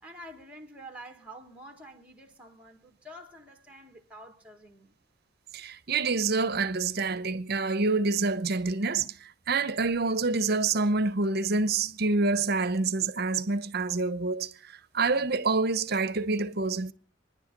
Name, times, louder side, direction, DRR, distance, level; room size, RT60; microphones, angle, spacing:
voice 1, 0.0-5.0, right 1 dB, 5° right, 1.7 m, -48 dB
voice 2, 5.5-16.9, right 3 dB, 55° right, 0.9 m, -27 dB
25.5 x 10.5 x 5.3 m
head